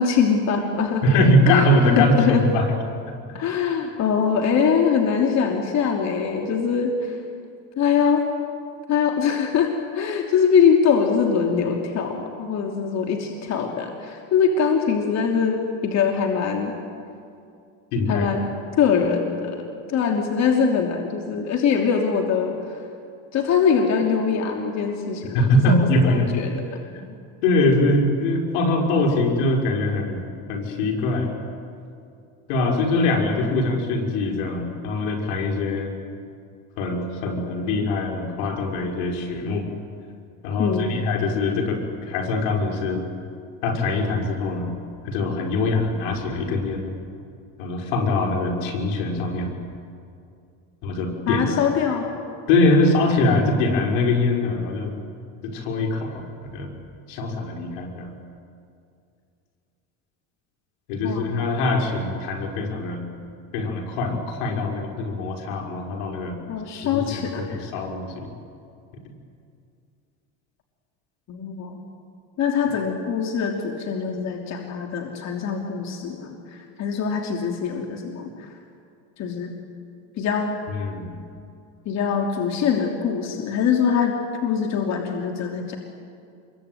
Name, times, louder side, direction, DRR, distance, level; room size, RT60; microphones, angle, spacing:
voice 1, 0.0-1.0 1.5-1.7 2.0-2.4 3.3-7.2 7.8-8.2 8.9-16.7 18.1-18.5 18.8-22.5 23.3-25.4 25.7-26.6 40.6-41.0 51.3-52.1 61.0-61.4 66.5-67.6 71.3-71.8 72.4-78.5 79.2-79.6 80.2-80.6 81.8-85.8, left 6 dB, 45° left, 2 dB, 3.0 m, -23 dB
voice 2, 1.0-2.7 17.9-18.3 25.3-26.3 26.9-27.0 27.4-31.3 32.5-35.9 36.8-39.7 40.4-43.0 43.6-44.7 45.0-46.9 47.6-49.5 50.8-51.4 52.5-54.9 55.4-56.7 57.1-58.1 60.9-63.1 63.5-66.4 66.7-68.3 80.7-81.2, left 2 dB, 80° left, 2 dB, 5.6 m, -22 dB
27.0 x 23.0 x 9.5 m, 2.4 s
cardioid pair, 125°, 37 cm